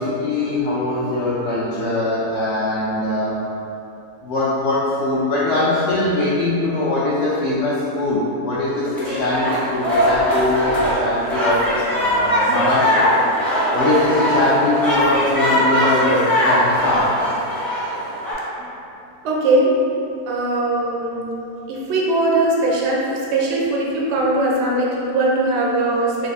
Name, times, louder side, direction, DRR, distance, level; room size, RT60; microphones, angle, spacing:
voice 1, 0.0-3.4 4.2-13.1 13.7-17.1 18.2-18.6, left 2 dB, 65° left, -8 dB, 0.7 m, -21 dB
sound 1, 8.9-18.3, equal, ahead, 0.4 m, -20 dB
voice 2, 19.2-19.8 20.3-21.3 21.7-26.3, right 2 dB, 70° right, -3 dB, 0.6 m, -20 dB
3.4 x 2.5 x 3.1 m, 2.8 s
omnidirectional pair, 1.7 m